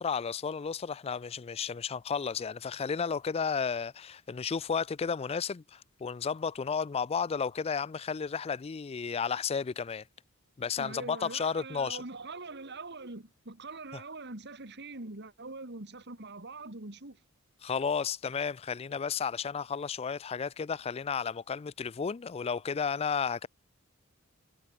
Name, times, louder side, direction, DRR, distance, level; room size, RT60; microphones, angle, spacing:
voice 1, 0.0-10.0 10.6-12.0 17.6-23.5, left 6 dB, 30° left, 0.4 m, -33 dB
voice 2, 10.8-17.2, right 3 dB, 55° right, 2.6 m, -43 dB
head